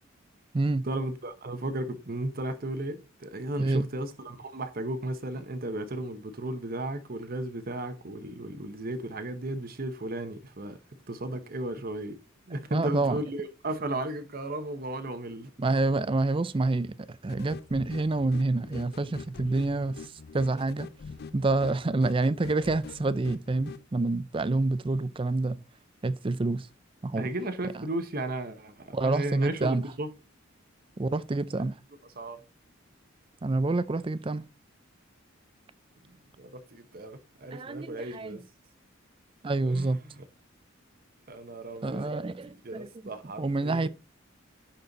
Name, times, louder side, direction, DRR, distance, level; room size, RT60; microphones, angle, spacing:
voice 1, 0.8-10.8 11.1-12.2 12.5-15.5 27.2-30.1 32.2-32.4 36.1-38.4 39.7-40.2 41.3-42.2 42.6-43.9, right 1 dB, 45° right, 0.9 m, -35 dB
voice 2, 12.7-13.2 15.6-20.9 21.3-25.6 26.0-26.7 27.0-27.3 28.9-29.8 31.0-31.8 33.4-34.4 37.5-38.4 39.4-40.0 41.8-43.1 43.4-43.9, right 2 dB, 25° right, 0.4 m, -28 dB
sound 1, 17.3-23.8, left 5 dB, 50° left, 0.4 m, -45 dB
10.5 x 4.4 x 3.9 m
head